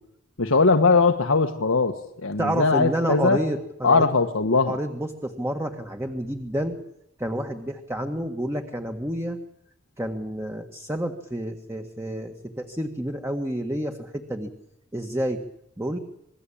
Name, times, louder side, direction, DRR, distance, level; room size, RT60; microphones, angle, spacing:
voice 1, 0.4-3.4 3.8-4.8, left 4 dB, 90° left, 6 dB, 1.5 m, -20 dB
voice 2, 2.4-4.1 4.7-6.8 7.2-9.4 10.0-14.5 14.9-15.4 15.8-16.0, right 1 dB, 15° right, 5 dB, 1.8 m, -29 dB
27.5 x 21.0 x 8.7 m, 0.77 s
head